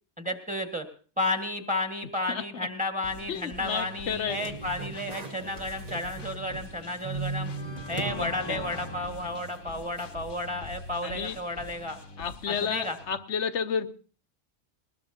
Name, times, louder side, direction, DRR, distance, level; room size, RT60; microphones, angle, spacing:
voice 1, 0.2-0.9 1.2-7.5 7.9-12.0 12.5-13.0, left 1 dB, 5° right, 5 dB, 1.6 m, -32 dB
sound 1, 3.0-13.1, left 2 dB, 85° left, 1.6 m, -45 dB
voice 2, 3.3-4.4 8.0-8.6 11.0-11.4 12.2-13.9, left 7 dB, 70° left, 12 dB, 1.2 m, -31 dB
sound 2, 4.3-6.7 7.0-8.2 8.6-8.7 10.0-10.1, right 4 dB, 35° right, 1.1 m, -37 dB
sound 3, 6.4-6.6 7.3-10.1, left 2 dB, 25° left, 1.1 m, -42 dB
20.0 x 20.0 x 2.8 m, 0.39 s
omnidirectional pair, 1.3 m